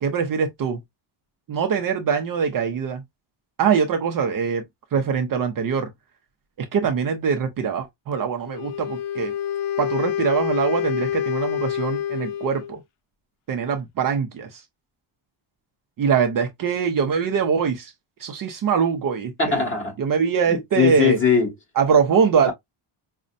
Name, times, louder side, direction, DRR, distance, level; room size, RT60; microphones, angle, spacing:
voice 1, 0.0-0.8 1.5-3.0 3.6-4.6 4.9-5.9 6.6-9.3 9.8-12.8 13.5-14.6 16.0-17.9 18.2-19.3 20.0-21.2 21.8-22.5, right 6 dB, 45° right, 0.5 m, -23 dB
Wind instrument woodwind instrument, 8.5-12.8, left 10 dB, 70° left, 0.6 m, -27 dB
voice 2, 19.4-19.9 20.5-21.5 22.5-22.6, left 6 dB, 25° left, 1.5 m, -20 dB
5.2 x 2.1 x 2.5 m
cardioid pair, 165°, 48 cm